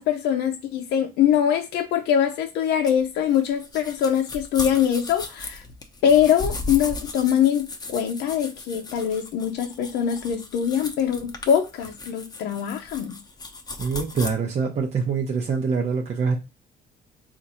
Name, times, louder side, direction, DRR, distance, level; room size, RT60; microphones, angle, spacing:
voice 1, 0.0-5.6 6.0-13.1, left 9 dB, 80° left, 0.6 m, -23 dB
sound 1, 2.8-14.3, left 3 dB, 25° left, 0.8 m, -36 dB
voice 2, 13.8-16.4, right 5 dB, 40° right, 0.7 m, -24 dB
4.0 x 2.5 x 4.2 m
cardioid pair, 110°, 17 cm